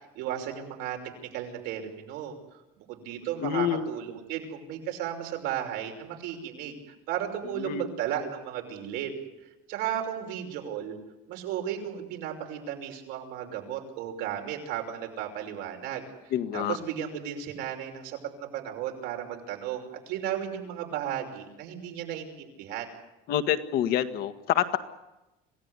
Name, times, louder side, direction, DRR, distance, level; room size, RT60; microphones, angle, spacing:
voice 1, 0.2-2.3 2.8-6.8 7.1-9.2 9.7-10.9 11.3-22.9, right 10 dB, 85° right, 3 dB, 5.7 m, -34 dB
voice 2, 3.4-3.8 7.6-7.8 16.3-16.8 23.3-24.8, left 10 dB, 65° left, 9 dB, 1.9 m, -27 dB
27.0 x 17.0 x 9.8 m, 0.97 s
cardioid pair, 160°, 18 cm